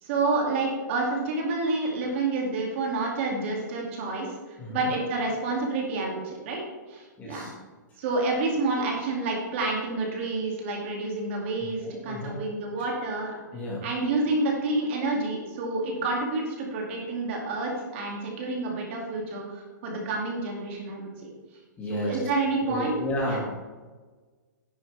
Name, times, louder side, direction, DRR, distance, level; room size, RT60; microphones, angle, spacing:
voice 1, 0.0-6.6 6.9-7.5 8.0-13.3 13.8-21.3 21.9-23.0 23.3-23.4, right 3 dB, 40° right, -1 dB, 2.5 m, -29 dB
voice 2, 4.6-4.9 7.2-7.5 11.6-12.4 13.5-14.1 21.8-22.2 22.6-23.4, equal, 15° left, -4 dB, 2.1 m, -32 dB
10.5 x 9.1 x 3.4 m, 1.3 s
hypercardioid pair, 160°, 10 cm